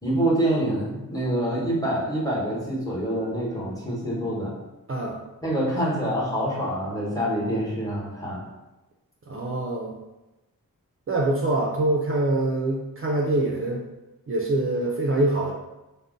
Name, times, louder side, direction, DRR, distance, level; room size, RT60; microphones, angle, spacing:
voice 1, 0.0-4.5 5.4-8.4, right 1 dB, 10° left, -5 dB, 1.0 m, -26 dB
voice 2, 4.9-5.2 9.3-9.9 11.1-13.8 14.3-15.5, right 2 dB, 40° right, -2 dB, 0.4 m, -24 dB
2.5 x 2.0 x 3.7 m, 1.0 s
wide cardioid pair, 60°, 35 cm